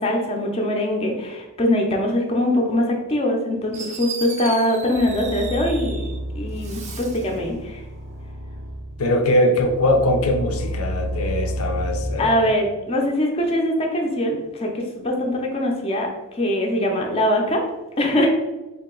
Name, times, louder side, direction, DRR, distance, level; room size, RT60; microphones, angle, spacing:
voice 1, 0.0-6.1 6.3-7.8 12.2-16.1 16.3-17.6 18.0-18.3, left 1 dB, 25° left, 0 dB, 0.5 m, -22 dB
Fireworks, 3.3-3.4 3.7-6.2 6.5-7.4, right 5 dB, 30° right, 0.4 m, -36 dB
sound 1, 4.5-4.6 5.0-9.0 9.6-12.0, equal, 75° right, 0.8 m, -31 dB
voice 2, 9.0-12.5, left 1 dB, 80° left, 4 dB, 0.5 m, -21 dB
3.7 x 2.8 x 3.8 m, 1.1 s
head